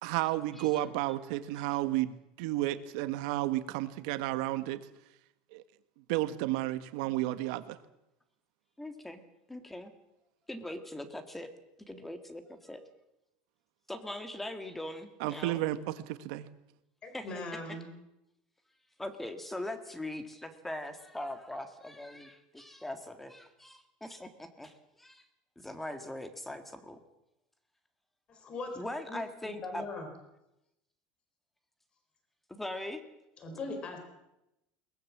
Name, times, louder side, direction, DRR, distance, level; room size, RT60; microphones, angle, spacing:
voice 1, 0.0-4.8 5.5-5.6 6.1-7.8 15.2-15.8 16.1-16.5, right 16 dB, 65° right, 11 dB, 1.6 m, -32 dB
voice 2, 8.8-9.2 9.5-9.9 10.5-11.5 11.8-12.8 13.9-15.6 17.1-17.3 17.7-17.8 19.0-25.2 25.5-27.0 28.7-29.8 32.5-33.0, left 1 dB, 5° left, 8 dB, 1.8 m, -41 dB
voice 3, 17.0-17.9 28.3-28.8 29.1-30.1 33.4-34.0, left 2 dB, 25° left, 6 dB, 4.3 m, -40 dB
22.0 x 20.0 x 7.4 m, 0.90 s
cardioid pair, 165°, 4 cm